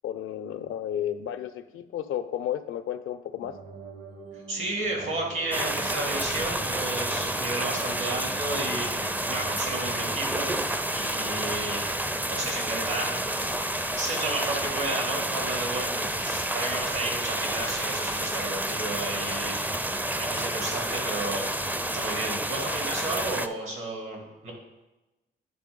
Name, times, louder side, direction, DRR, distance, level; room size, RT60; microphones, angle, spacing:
voice 1, 0.0-3.6, left 10 dB, 85° left, 11 dB, 0.5 m, -32 dB
sound 1, 3.4-10.6, right 3 dB, 55° right, 1.3 m, -44 dB
voice 2, 4.3-10.5 10.9-12.0 12.3-13.5 13.9-19.6 20.2-21.5 21.9-24.5, right 2 dB, 75° right, 0 dB, 2.5 m, -33 dB
sound 2, 5.5-23.5, right 1 dB, 10° right, 0.4 m, -30 dB
10.5 x 3.5 x 5.2 m, 1.0 s
supercardioid pair, 55°, 21 cm